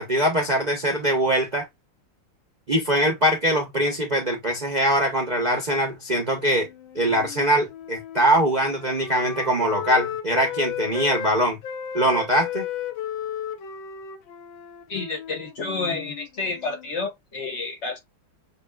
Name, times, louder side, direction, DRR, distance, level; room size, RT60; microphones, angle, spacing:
voice 1, 0.0-1.7 2.7-6.7 6.9-11.6 11.9-12.6, right 1 dB, 85° right, 0.3 m, -22 dB
Wind instrument woodwind instrument, 6.4-11.3 11.6-16.9, left 9 dB, 70° left, 1.5 m, -35 dB
voice 2, 14.9-18.0, left 3 dB, 40° left, 1.3 m, -30 dB
6.6 x 2.4 x 2.2 m
omnidirectional pair, 2.3 m